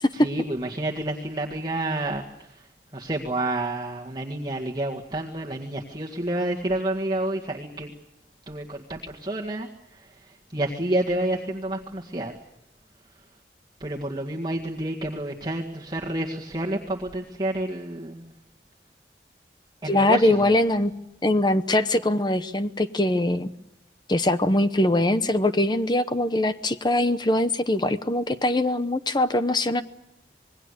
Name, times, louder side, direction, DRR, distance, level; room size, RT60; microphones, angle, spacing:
voice 1, 0.1-2.6 2.9-7.9 8.5-12.3 13.8-18.3 19.8-20.5, right 1 dB, 25° right, -1 dB, 1.9 m, -29 dB
voice 2, 19.8-20.9 21.2-23.5 24.1-29.8, left 1 dB, 25° left, 11 dB, 0.9 m, -22 dB
26.5 x 21.0 x 6.6 m, 0.87 s
head